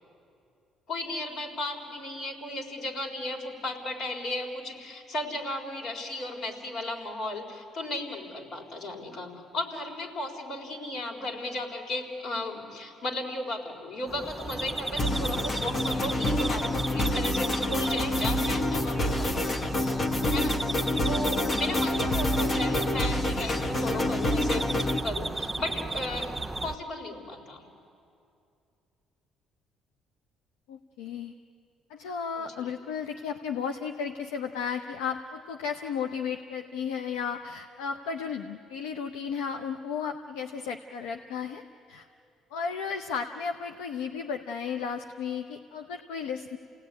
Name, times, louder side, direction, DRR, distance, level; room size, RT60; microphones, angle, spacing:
voice 1, 0.9-19.5 20.3-26.3 26.6-27.6 32.4-32.7, left 1 dB, 65° left, 1 dB, 4.2 m, -35 dB
sound 1, 14.1-26.8, right 2 dB, 10° right, 1.1 m, -35 dB
sound 2, 15.0-25.0, left 1 dB, 45° left, 1.3 m, -27 dB
voice 2, 30.7-31.3 31.9-41.6 41.9-42.1 42.5-46.6, left 6 dB, 90° left, 5 dB, 0.8 m, -34 dB
29.0 x 17.5 x 9.8 m, 2.6 s
supercardioid pair, 70°, 0 cm